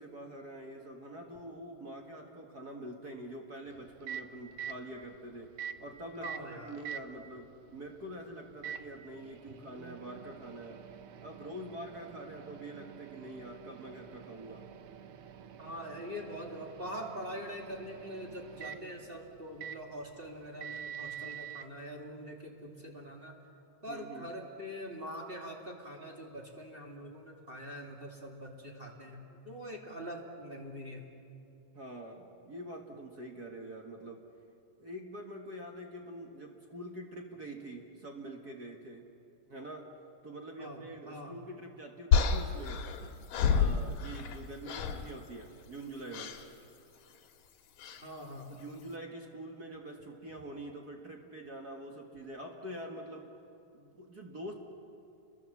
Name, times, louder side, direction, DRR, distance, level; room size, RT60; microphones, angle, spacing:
voice 1, 0.0-5.5 5.8-10.8 11.2-14.6 23.9-24.3 31.7-34.2 34.8-39.1 39.5-39.9 40.2-42.8 43.5-46.4 48.5-53.3 53.7-54.5, right 1 dB, 35° right, 1 dB, 1.7 m, -45 dB
Microwave oven, 3.7-21.7, right 8 dB, 90° right, 1.2 m, -47 dB
voice 2, 6.2-6.8 15.6-23.4 23.8-31.0 40.6-41.4 48.0-48.5, equal, 20° right, 0 dB, 2.4 m, -44 dB
sound 1, 42.1-44.4 44.7-45.1 46.1-46.4 47.8-48.1, left 6 dB, 65° left, 2.7 m, -29 dB
30.0 x 22.0 x 7.3 m, 2.6 s
omnidirectional pair, 3.9 m